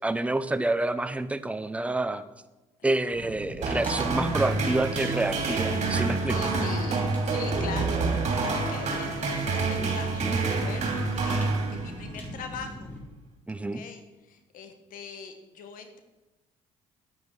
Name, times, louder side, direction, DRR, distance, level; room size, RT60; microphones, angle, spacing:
voice 1, 0.0-2.2 2.8-6.4 13.5-13.8, right 2 dB, 10° right, 12 dB, 0.7 m, -28 dB
Fire, 3.1-13.0, left 1 dB, 10° left, 3.5 m, -41 dB
sound 1, 3.6-12.2, right 3 dB, 50° right, 2.8 m, -27 dB
voice 2, 6.3-12.9 13.7-14.0 14.3-16.0, left 5 dB, 65° left, 7 dB, 1.4 m, -41 dB
9.5 x 9.4 x 4.8 m, 1.1 s
hypercardioid pair, 60°, 15 cm